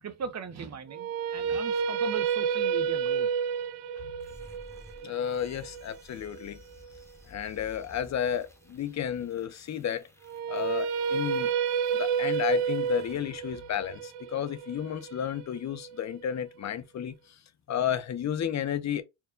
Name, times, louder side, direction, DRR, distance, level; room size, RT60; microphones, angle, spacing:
voice 1, 0.0-3.3, right 6 dB, 35° right, 0.6 m, -39 dB
sound 1, 0.9-7.0 10.2-16.3, right 7 dB, 80° right, 0.6 m, -30 dB
sound 2, 4.2-14.2, left 1 dB, 5° left, 1.0 m, -55 dB
voice 2, 5.0-6.6 7.3-10.0 10.5-11.5 11.9-17.1 17.7-19.0, left 9 dB, 35° left, 0.5 m, -32 dB
4.4 x 2.1 x 3.7 m
cardioid pair, 125°, 50 cm